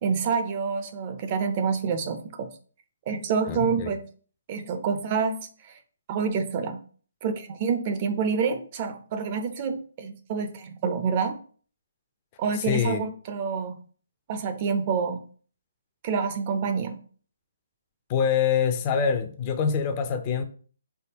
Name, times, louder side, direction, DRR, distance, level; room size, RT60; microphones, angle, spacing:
voice 1, 0.0-2.5 3.1-4.0 4.5-5.4 5.6-5.8 6.1-6.8 7.2-11.4 12.4-13.8 14.3-15.2 16.0-17.0, right 5 dB, 30° right, 7 dB, 0.5 m, -27 dB
voice 2, 3.5-3.9 12.6-13.0 18.1-20.4, left 7 dB, 25° left, 8 dB, 0.4 m, -25 dB
3.9 x 3.5 x 2.9 m, 0.42 s
hypercardioid pair, 155°, 0 cm